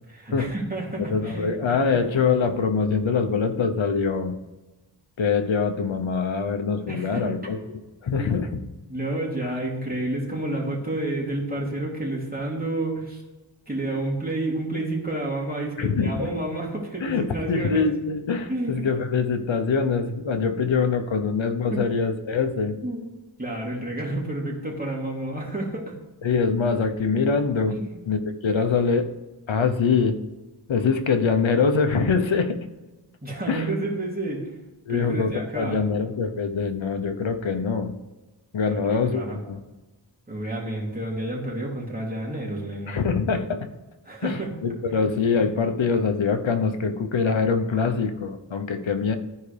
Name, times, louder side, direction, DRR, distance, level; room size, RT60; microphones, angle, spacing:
voice 1, 0.1-1.6 6.9-7.3 8.1-8.3 8.9-13.2 13.7-17.8 18.5-18.8 21.7-21.8 22.8-23.1 23.4-25.9 27.7-28.0 33.2-34.5 34.9-35.8 38.6-39.4 40.3-43.0 44.0-44.5 44.9-45.0, right 1 dB, 20° right, -3 dB, 2.8 m, -30 dB
voice 2, 1.0-4.4 5.2-7.6 8.0-8.6 15.8-16.3 17.0-22.8 26.2-27.8 28.1-29.1 29.5-30.2 30.7-32.6 33.5-33.7 34.9-37.9 38.5-39.6 42.9-43.6 44.2-49.2, left 5 dB, 75° left, 7 dB, 0.9 m, -24 dB
14.0 x 4.8 x 3.4 m, 1.1 s
wide cardioid pair, 55°, 47 cm